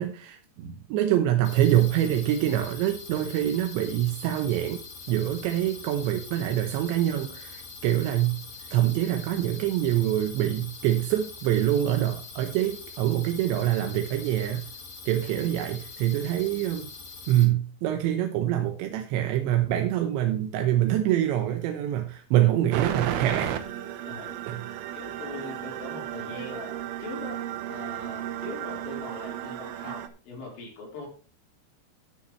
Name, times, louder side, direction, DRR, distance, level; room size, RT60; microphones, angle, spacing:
voice 1, 0.0-14.6 15.1-16.9 17.3-23.5 24.5-24.6, right 12 dB, 90° right, 5 dB, 3.3 m, -25 dB
sound 1, 1.4-17.4, left 4 dB, 65° left, 6.8 m, -43 dB
sound 2, 22.7-30.1, right 11 dB, 70° right, 2.5 m, -34 dB
voice 2, 24.1-24.4 24.9-27.4 27.7-31.1, left 3 dB, 85° left, -2 dB, 6.6 m, -41 dB
12.5 x 10.0 x 3.2 m, 0.35 s
omnidirectional pair, 5.0 m